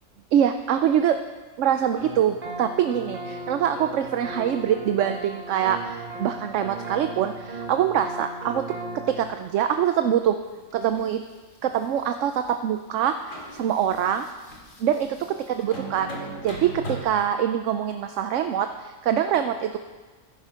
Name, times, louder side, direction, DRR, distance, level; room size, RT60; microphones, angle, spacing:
voice 1, 0.3-1.2 1.6-8.6 9.1-10.4 10.7-11.2 11.6-14.3 14.8-16.1 16.4-19.8, right 9 dB, 70° right, 7 dB, 0.9 m, -24 dB
sound 1, 2.0-9.3, right 2 dB, 40° right, 1.7 m, -37 dB
sound 2, 10.5-11.1 11.7-12.5 12.9-13.0 13.3-17.0, right 1 dB, 80° left, 2.6 m, -39 dB
14.0 x 11.0 x 5.0 m, 1.3 s
omnidirectional pair, 1.4 m